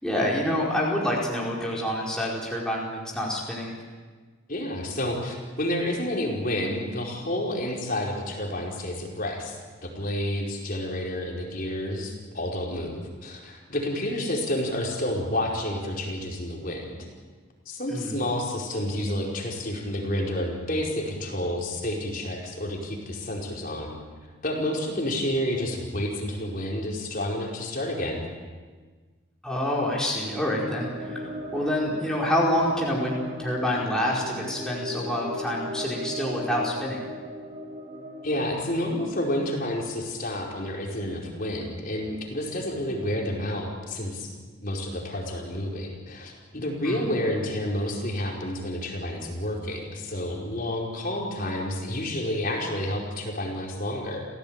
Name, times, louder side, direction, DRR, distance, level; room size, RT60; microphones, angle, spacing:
voice 1, 0.0-3.7 17.9-18.2 29.4-37.0 46.8-47.1, left 1 dB, 5° left, -5 dB, 4.7 m, -27 dB
voice 2, 4.5-9.6 9.8-17.0 17.6-23.9 24.4-28.2 38.2-44.3 44.6-54.3, left 1 dB, 40° left, -1 dB, 5.0 m, -30 dB
sound 1, 30.2-38.4, equal, 30° right, 4.4 m, -37 dB
30.0 x 17.0 x 9.0 m, 1.4 s
head